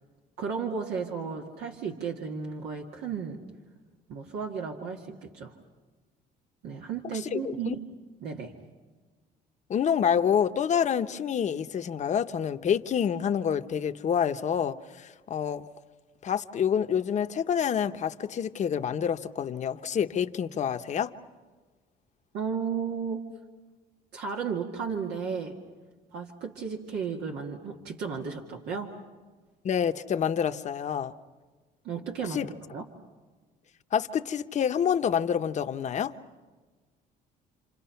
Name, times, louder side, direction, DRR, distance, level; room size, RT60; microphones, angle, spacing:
voice 1, 0.4-3.4 4.1-5.5 6.6-7.8 8.2-8.5 22.3-23.2 24.1-25.6 26.1-28.9 31.8-32.9, right 6 dB, 80° right, 2.1 m, -34 dB
voice 2, 7.3-7.8 9.7-15.7 16.2-21.1 29.6-31.1 32.3-32.5 33.9-36.1, left 8 dB, 45° left, 1.0 m, -27 dB
29.5 x 27.0 x 5.8 m
cardioid pair, 110°, 17 cm